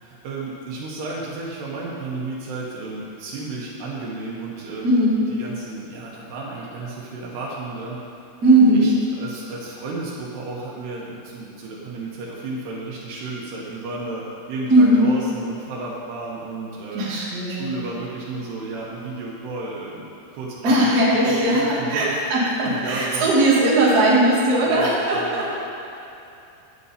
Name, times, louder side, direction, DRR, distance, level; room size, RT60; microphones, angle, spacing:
voice 1, 0.0-5.0 5.3-8.0 8.7-17.0 17.5-20.7 21.1-22.2 22.6-23.5 23.9-24.0 24.6-25.5, right 3 dB, 75° right, -5 dB, 3.0 m, -33 dB
voice 2, 4.8-5.3 8.4-9.0 14.7-15.1 16.9-17.7 20.6-25.5, right 1 dB, 35° right, -8 dB, 1.7 m, -18 dB
9.2 x 9.0 x 4.2 m, 2.7 s
omnidirectional pair, 4.9 m